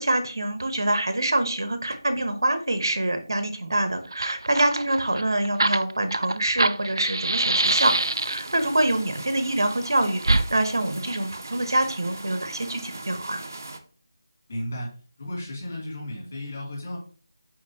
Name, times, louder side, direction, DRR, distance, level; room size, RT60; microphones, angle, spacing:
voice 1, 0.0-8.0 8.2-13.4, right 1 dB, 65° right, 9 dB, 0.9 m, -25 dB
Fire, 3.7-3.8 4.1-8.6 10.2-10.5, right 2 dB, 85° right, 0.4 m, -24 dB
sound 1, 7.6-13.8, right 2 dB, 45° right, 0.7 m, -40 dB
voice 2, 14.5-14.9 15.2-17.0, left 1 dB, 30° left, -3 dB, 2.6 m, -34 dB
6.7 x 4.9 x 2.8 m, 0.41 s
figure-of-eight pair, 180°, 2 cm